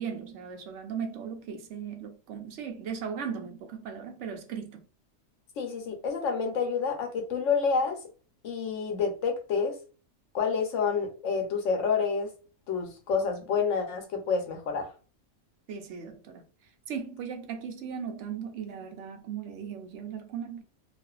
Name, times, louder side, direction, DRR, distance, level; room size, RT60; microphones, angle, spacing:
voice 1, 0.0-4.9 15.7-20.6, right 7 dB, 70° right, 0.8 m, -37 dB
voice 2, 5.6-8.0 8.4-9.8 10.3-12.3 12.7-14.9, left 5 dB, 75° left, 1.0 m, -28 dB
2.5 x 2.4 x 2.3 m
omnidirectional pair, 1.3 m